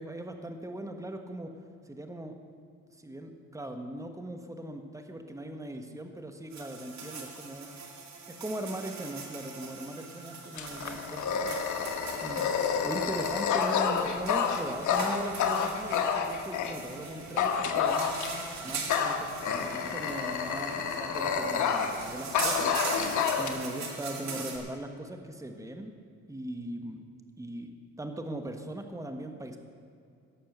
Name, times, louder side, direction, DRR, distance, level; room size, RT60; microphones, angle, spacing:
voice 1, 0.0-1.5 1.8-2.3 2.9-7.7 8.3-11.6 12.2-18.1 18.6-22.9 23.3-25.9 26.3-27.1 27.4-29.6, right 1 dB, 10° right, 5 dB, 1.4 m, -39 dB
sound 1, 6.5-24.6, right 4 dB, 65° right, 2.3 m, -41 dB
Dog, 10.6-16.8 17.4-18.5 18.9-22.0 22.3-23.5, left 6 dB, 75° left, 1.3 m, -29 dB
17.0 x 6.7 x 6.7 m, 2.5 s
cardioid pair, 90°, 30 cm